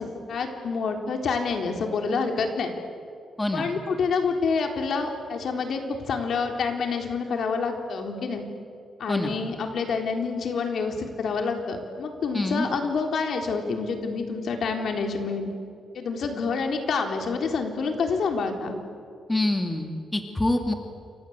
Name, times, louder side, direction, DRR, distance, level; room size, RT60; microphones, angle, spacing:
voice 1, 0.0-2.7 3.5-8.4 9.0-15.5 15.9-18.7, left 4 dB, 65° left, 4 dB, 3.9 m, -27 dB
voice 2, 12.3-12.7 19.3-20.7, left 1 dB, 15° left, 4 dB, 2.4 m, -26 dB
29.0 x 25.0 x 8.2 m, 2.5 s
cardioid pair, 125°, 0 cm